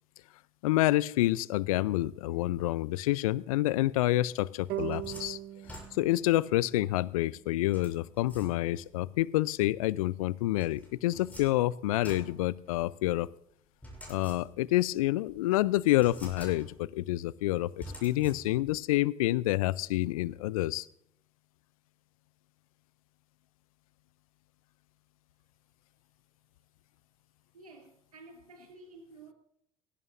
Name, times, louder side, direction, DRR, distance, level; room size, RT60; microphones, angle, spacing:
voice 1, 0.6-5.4 6.0-13.3 14.1-20.9, left 16 dB, 75° left, 0.5 m, -28 dB
sound 1, 4.4-6.3 7.7-8.9 10.6-13.1 13.8-14.8 15.3-15.4 15.9-17.0 17.8-18.8, equal, 10° left, 6.8 m, -48 dB
sound 2, 4.7-8.0, right 13 dB, 60° right, 1.1 m, -41 dB
voice 2, 27.5-29.3, right 2 dB, 90° right, 2.4 m, -52 dB
17.0 x 16.0 x 2.5 m
figure-of-eight pair, 60°, 18 cm